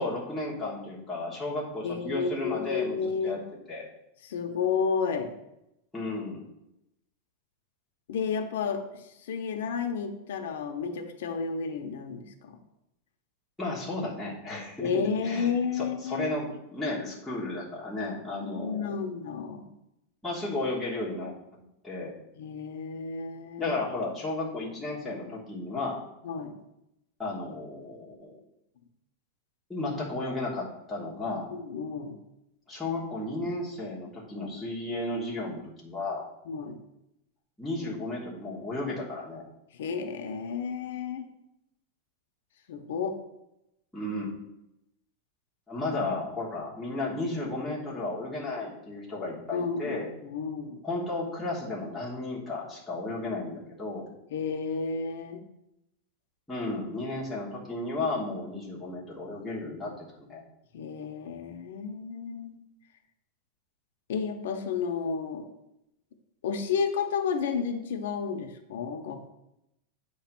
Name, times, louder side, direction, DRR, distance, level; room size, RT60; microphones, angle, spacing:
voice 1, 0.0-3.4 3.7-3.9 5.9-6.4 13.6-15.5 15.8-18.9 20.2-22.1 23.6-26.0 27.2-28.4 29.7-31.5 32.7-36.2 37.6-39.5 43.9-44.3 45.7-50.1 50.8-54.1 56.5-60.4, left 2 dB, 5° left, -7 dB, 1.2 m, -33 dB
voice 2, 1.8-3.4 4.2-5.3 8.1-12.6 14.8-16.3 18.4-19.7 22.4-23.8 26.2-26.6 31.5-32.2 36.5-36.8 39.7-41.3 42.7-43.2 49.5-50.8 54.3-55.4 60.7-62.6 64.1-65.5 66.4-69.3, left 5 dB, 75° left, 4 dB, 0.8 m, -31 dB
8.2 x 3.2 x 5.9 m, 0.86 s
supercardioid pair, 180°, 0 cm